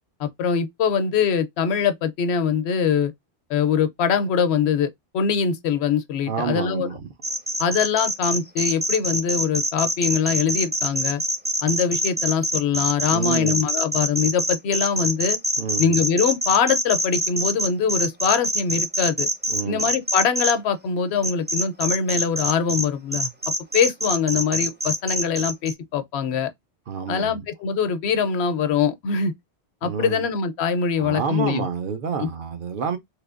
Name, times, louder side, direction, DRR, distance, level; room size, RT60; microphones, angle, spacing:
voice 1, 0.2-3.1 3.5-6.9 7.6-11.2 11.6-15.4 15.8-19.3 19.7-23.3 23.7-26.5 27.1-29.3 29.8-31.7, left 6 dB, 75° left, 0.8 m, -23 dB
voice 2, 6.2-7.1 13.1-13.6 15.6-16.0 19.5-19.9 26.9-27.5 29.8-30.2 31.0-33.0, right 6 dB, 60° right, 0.7 m, -28 dB
sound 1, 7.2-20.5 21.2-22.8 23.1-25.7, equal, 15° right, 0.4 m, -24 dB
3.3 x 2.9 x 2.4 m
omnidirectional pair, 1.1 m